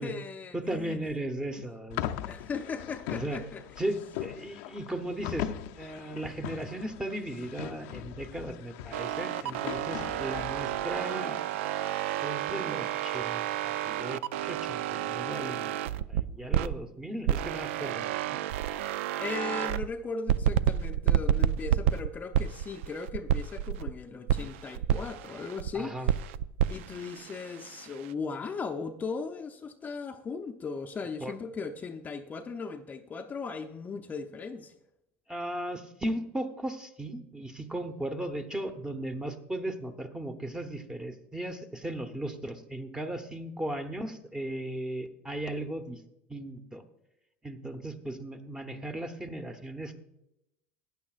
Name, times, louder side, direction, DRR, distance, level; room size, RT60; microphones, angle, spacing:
voice 1, 0.0-1.0 2.3-3.6 19.2-25.9 26.7-34.7, left 4 dB, 25° left, 5 dB, 0.6 m, -37 dB
voice 2, 0.5-2.1 3.1-3.4 3.8-11.4 12.2-18.4 25.7-26.1 31.2-31.3 35.3-46.0 46.3-46.8 47.4-50.0, right 1 dB, 10° right, 7 dB, 1.0 m, -36 dB
sound 1, 1.9-11.0, left 11 dB, 70° left, 0.6 m, -40 dB
sound 2, 8.9-16.8 17.2-19.9 20.3-23.9 24.3-25.7 26.1-28.1, right 10 dB, 80° right, 0.3 m, -30 dB
15.0 x 9.7 x 2.5 m, 0.84 s
supercardioid pair, 110°, 7 cm